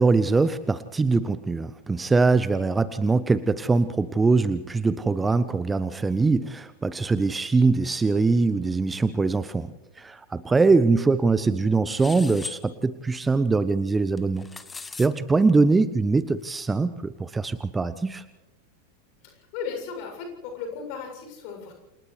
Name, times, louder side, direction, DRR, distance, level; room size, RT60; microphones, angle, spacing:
voice 1, 0.0-14.5 15.0-18.2, right 3 dB, 10° right, 15 dB, 0.6 m, -22 dB
sound 1, 11.9-12.6 14.2-15.1, left 4 dB, 10° left, 1.2 m, -38 dB
voice 2, 19.2-21.7, left 6 dB, 45° left, 4 dB, 7.2 m, -36 dB
29.0 x 28.5 x 3.3 m, 1.0 s
figure-of-eight pair, 90°, 0 cm